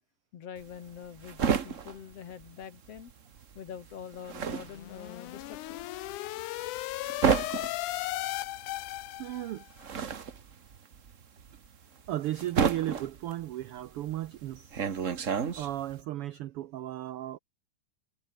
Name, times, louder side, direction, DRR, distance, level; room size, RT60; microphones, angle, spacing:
voice 1, 0.3-3.1 3.5-6.1, left 8 dB, 55° left, 2.6 m, -45 dB
sound 1, 0.6-3.1 3.4-16.0, right 7 dB, 65° right, 0.7 m, -32 dB
sound 2, 4.6-9.7, left 17 dB, 85° left, 2.2 m, -36 dB
voice 2, 9.2-9.6 12.1-14.9 15.6-17.4, right 14 dB, 85° right, 1.2 m, -35 dB
omnidirectional pair, 3.5 m